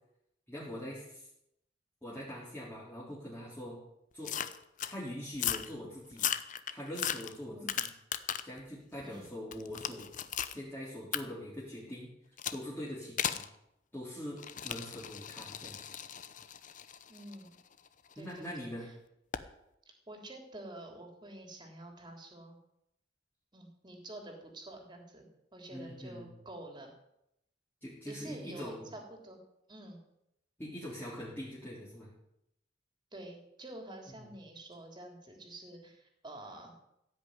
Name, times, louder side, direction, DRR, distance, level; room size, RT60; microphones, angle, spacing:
voice 1, 0.5-1.3 2.0-3.8 4.1-4.4 4.9-6.3 6.7-7.9 8.4-10.1 10.5-12.1 12.5-13.5 13.9-15.8 18.2-18.9 25.7-26.3 27.8-28.9 30.6-32.1 34.1-34.3, equal, 10° left, -8 dB, 3.7 m, -43 dB
sound 1, 4.2-4.9 5.3-5.7 6.1-8.6 9.0-10.6 11.1-11.2 12.4-12.6 13.2-13.5 14.4-18.3 19.3-19.5, left 9 dB, 45° left, 0.8 m, -37 dB
voice 2, 17.1-17.6 18.1-18.7 20.1-22.6 23.5-26.9 28.0-29.4 29.7-30.0 33.1-36.7, right 1 dB, 25° right, 3 dB, 3.3 m, -48 dB
16.0 x 6.4 x 9.6 m, 0.81 s
head